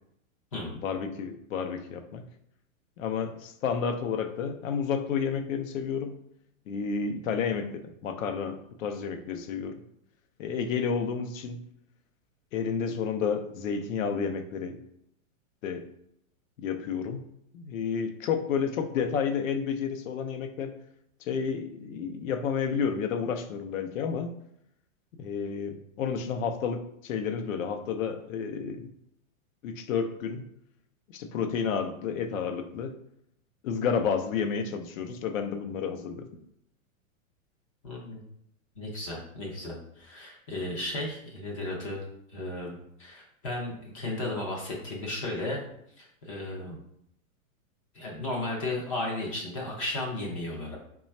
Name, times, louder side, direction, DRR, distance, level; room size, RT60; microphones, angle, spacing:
voice 1, 0.8-2.2 3.0-6.2 6.7-9.8 10.4-11.6 12.5-14.8 15.6-15.9 16.6-17.2 17.5-20.8 21.2-24.3 25.1-28.9 29.6-30.5 31.1-32.9 33.6-36.4, left 6 dB, 70° left, 7 dB, 0.6 m, -31 dB
voice 2, 37.8-38.2 38.8-42.0 42.3-45.6 46.0-46.8 47.9-50.8, left 2 dB, 25° left, -2 dB, 0.4 m, -34 dB
3.1 x 2.3 x 4.1 m, 0.74 s
supercardioid pair, 165°, 42 cm